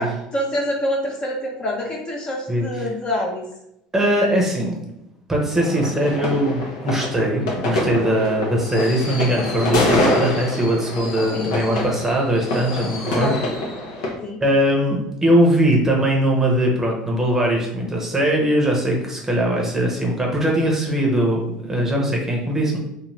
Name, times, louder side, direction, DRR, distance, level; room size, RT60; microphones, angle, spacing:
voice 1, 0.0-3.5 11.3-12.2 13.2-13.3 14.2-14.4, left 1 dB, 30° left, -1 dB, 0.7 m, -26 dB
voice 2, 2.5-2.9 3.9-4.8 5.3-13.3 14.4-22.8, right 1 dB, 15° right, -1 dB, 0.8 m, -20 dB
sound 1, 5.6-14.1, left 1 dB, 85° left, 0.8 m, -25 dB
2.5 x 2.4 x 3.1 m, 0.82 s
supercardioid pair, 100°, 3 cm